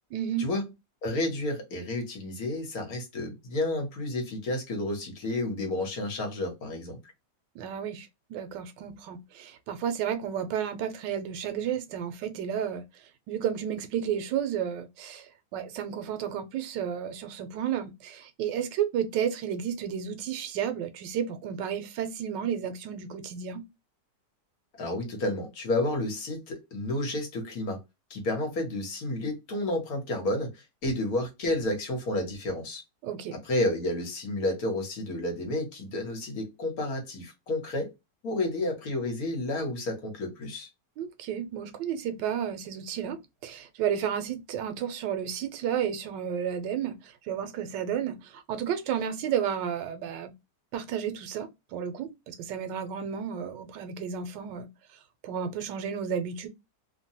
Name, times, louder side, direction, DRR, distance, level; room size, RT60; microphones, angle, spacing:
voice 1, 0.1-0.5 7.5-12.8 13.3-23.6 33.0-33.3 41.0-50.3 50.7-54.7 55.2-56.5, right 8 dB, 85° right, 1.2 m, -32 dB
voice 2, 1.0-7.0 24.7-27.8 28.1-32.8 33.4-37.9 38.2-40.7, left 1 dB, 60° left, 1.3 m, -31 dB
3.1 x 2.2 x 2.7 m
omnidirectional pair, 1.9 m